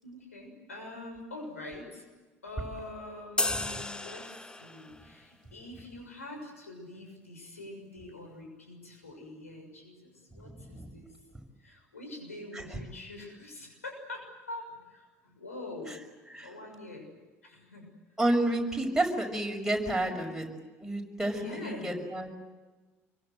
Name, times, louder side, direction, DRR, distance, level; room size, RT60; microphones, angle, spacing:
voice 1, 0.0-2.0 2.4-11.1 11.6-16.0 16.3-17.1 17.4-17.9 18.7-19.2 20.0-20.3 21.3-22.1, left 2 dB, 85° left, 2 dB, 6.6 m, -45 dB
sound 1, 3.4-5.0, left 2 dB, 10° left, 1.2 m, -33 dB
voice 2, 10.5-11.0 12.5-12.8 16.3-16.5 18.2-20.5 20.8-22.4, right 1 dB, 5° right, 1 dB, 6.4 m, -30 dB
27.5 x 24.0 x 7.8 m, 1.2 s
figure-of-eight pair, 65°, 8 cm